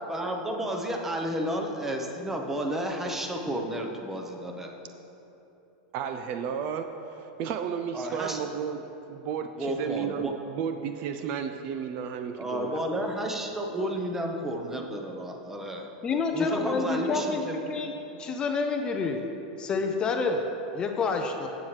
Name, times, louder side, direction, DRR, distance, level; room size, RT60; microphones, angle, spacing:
voice 1, 0.1-4.7 7.9-8.4 9.6-10.3 12.4-15.9 16.3-17.7, right 1 dB, 10° right, 2 dB, 0.8 m, -32 dB
voice 2, 5.9-13.1, right 7 dB, 40° right, 7 dB, 0.4 m, -33 dB
voice 3, 16.0-17.9 18.2-19.3 19.6-20.4 20.7-21.5, left 4 dB, 20° left, 4 dB, 0.5 m, -28 dB
15.0 x 7.3 x 3.2 m, 3.0 s
supercardioid pair, 160°, 4 cm